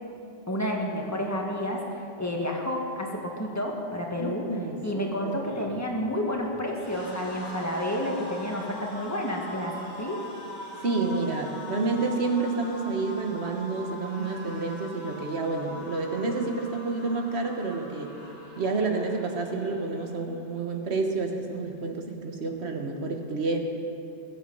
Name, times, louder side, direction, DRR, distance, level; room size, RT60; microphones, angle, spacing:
voice 1, 0.5-4.4 4.8-10.2, left 1 dB, 15° left, 0 dB, 1.7 m, -30 dB
voice 2, 4.2-5.3 10.8-18.1 18.6-23.6, right 3 dB, 70° right, 3 dB, 1.5 m, -29 dB
sound 1, 5.3-20.5 20.9-21.1 21.3-22.1, left 1 dB, 85° left, 2.9 m, -42 dB
21.0 x 7.9 x 5.5 m, 2.6 s
omnidirectional pair, 1.2 m